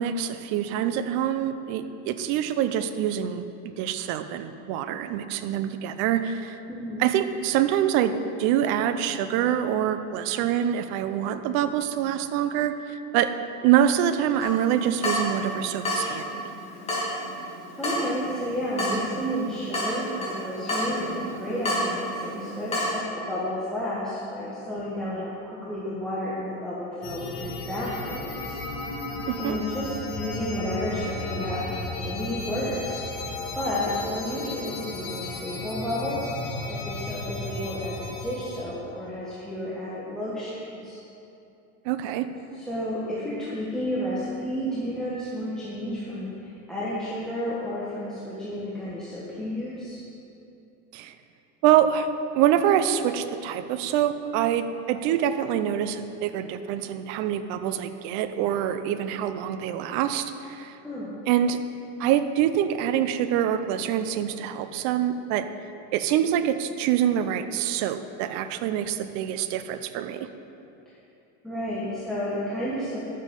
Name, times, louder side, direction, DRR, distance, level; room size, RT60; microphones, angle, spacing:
voice 1, 0.0-3.5 3.8-6.6 7.0-13.3 13.6-16.3 29.3-29.6 41.8-42.3 50.9-51.1 51.6-52.1 52.3-60.8 61.3-61.6 62.0-65.5 65.9-70.3, right 10 dB, 50° right, 10 dB, 0.7 m, -25 dB
voice 2, 6.7-7.1 17.8-28.6 29.4-31.6 31.9-33.0 33.2-41.0 42.5-50.0 60.8-61.2 71.4-73.0, equal, ahead, -8 dB, 1.4 m, -31 dB
Water tap faucet / Drip, 14.4-23.0, equal, 15° left, 2.3 m, -31 dB
sound 1, 27.0-38.6, left 2 dB, 55° left, 2.1 m, -34 dB
12.0 x 7.5 x 5.3 m, 2.8 s
supercardioid pair, 145°, 35 cm